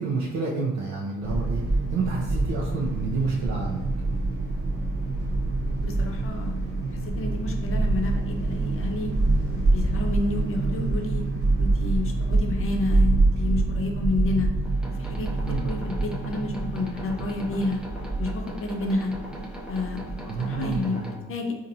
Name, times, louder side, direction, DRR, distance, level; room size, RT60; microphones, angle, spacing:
voice 1, 0.0-1.6 1.9-3.8 15.4-15.6 20.2-21.2, right 4 dB, 75° right, -4 dB, 0.6 m, -29 dB
sound 1, 1.2-20.9, right 2 dB, 50° right, 1.0 m, -26 dB
voice 2, 5.8-6.5 7.0-9.1 9.5-11.2 11.6-14.5 14.9-17.8 18.2-19.1 19.7-21.0 21.3-21.5, left 2 dB, 45° left, 3 dB, 0.6 m, -30 dB
sound 2, 14.6-21.2, equal, 5° right, 0.5 m, -41 dB
4.1 x 2.5 x 2.7 m, 1.1 s
cardioid pair, 90°, 30 cm